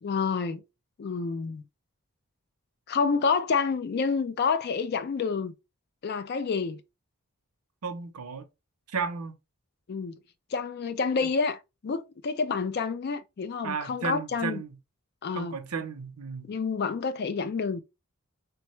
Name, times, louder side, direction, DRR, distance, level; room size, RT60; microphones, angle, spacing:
voice 1, 0.0-0.6 1.0-1.6 2.9-5.5 6.0-6.8 9.9-10.2 10.5-14.6 15.2-15.6 16.5-17.8, left 5 dB, 45° left, 0.3 m, -28 dB
voice 2, 7.8-8.5 8.9-9.4 13.6-14.8 15.3-16.5, right 5 dB, 85° right, 0.6 m, -34 dB
3.4 x 2.2 x 2.9 m
head